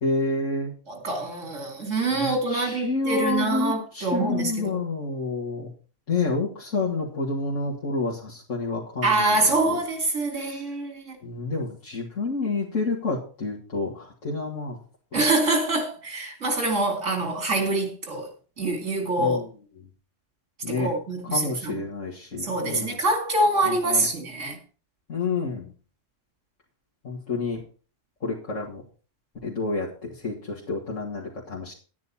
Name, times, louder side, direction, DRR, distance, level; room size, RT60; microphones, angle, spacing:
voice 1, 0.0-0.7 2.1-5.7 6.1-9.4 9.7-9.8 10.4-10.6 11.2-14.8 19.2-19.4 20.6-20.9 21.3-23.0 23.7-24.1 25.1-25.7 27.0-27.6 28.2-28.8 29.4-31.7, left 3 dB, 85° left, 2.4 m, -29 dB
voice 2, 0.9-4.8 9.0-11.2 15.1-18.3 18.6-19.4 20.7-21.8 22.4-24.6, right 2 dB, 75° right, 2.9 m, -25 dB
10.5 x 9.6 x 4.3 m
omnidirectional pair, 1.3 m